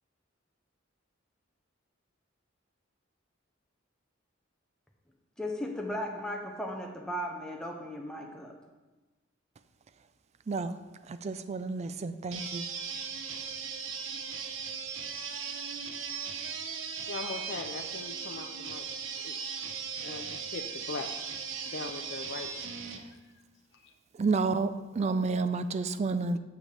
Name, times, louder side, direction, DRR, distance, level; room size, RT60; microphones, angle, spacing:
voice 1, 5.4-8.5, equal, 5° left, 0.6 m, -36 dB
voice 2, 10.5-10.8 11.1-12.7 24.1-26.4, right 4 dB, 35° right, 0.3 m, -30 dB
sound 1, 12.3-23.0, right 6 dB, 70° right, 0.7 m, -38 dB
voice 3, 17.1-18.9 19.2-19.4 20.0-22.5 22.8-23.2 23.7-23.9, left 4 dB, 60° left, 0.4 m, -41 dB
8.8 x 6.9 x 3.3 m
head